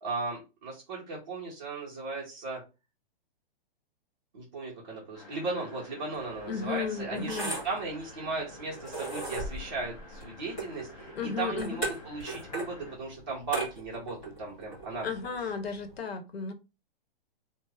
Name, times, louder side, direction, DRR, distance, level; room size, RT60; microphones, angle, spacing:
voice 1, 0.0-2.6 4.3-15.1, right 3 dB, 20° right, 0.5 m, -36 dB
sound 1, 5.1-13.0, left 2 dB, 35° left, 0.8 m, -51 dB
sound 2, 6.1-15.9, right 2 dB, 10° left, 1.8 m, -39 dB
voice 2, 6.5-7.5 11.1-11.8 15.0-16.5, left 5 dB, 90° left, 0.8 m, -34 dB
3.3 x 2.0 x 3.3 m
hypercardioid pair, 180°, 30 cm